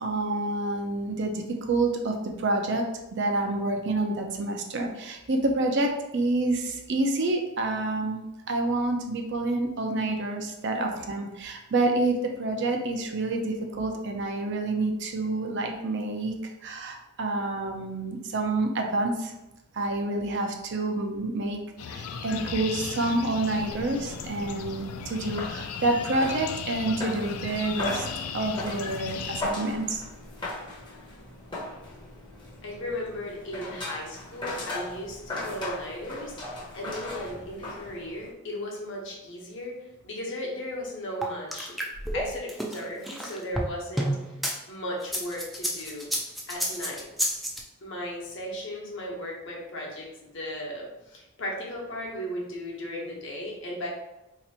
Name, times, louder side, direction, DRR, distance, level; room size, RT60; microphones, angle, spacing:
voice 1, 0.0-2.8 3.1-8.2 8.5-19.3 19.7-21.6 21.9-28.1 28.3-30.0, right 2 dB, 55° right, 3 dB, 0.5 m, -28 dB
sound 1, 21.8-29.4, left 6 dB, 85° left, 0.4 m, -36 dB
sound 2, 23.4-38.3, left 2 dB, 20° left, 0.8 m, -38 dB
voice 2, 30.9-31.3 32.6-39.8 40.0-41.7 42.1-44.2 44.7-46.1 46.5-47.1 47.8-53.9, equal, 60° left, -2 dB, 1.0 m, -36 dB
sound 3, 41.2-44.5 45.0-47.6, equal, ahead, 0.4 m, -30 dB
2.9 x 2.5 x 4.2 m, 0.95 s
head